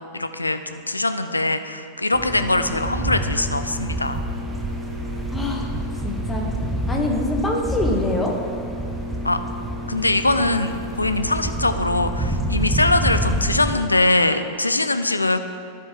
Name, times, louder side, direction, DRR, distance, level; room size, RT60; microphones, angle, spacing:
voice 1, 0.1-4.2 9.2-9.4 9.9-15.4, left 2 dB, 85° left, 9 dB, 0.4 m, -22 dB
sound 1, 2.1-13.8, right 1 dB, 10° right, 0.8 m, -27 dB
voice 2, 5.3-5.7 6.0-6.5 6.9-8.4, left 2 dB, 10° left, 0 dB, 1.2 m, -24 dB
13.0 x 5.6 x 3.0 m, 2.6 s
figure-of-eight pair, 90°, 0 cm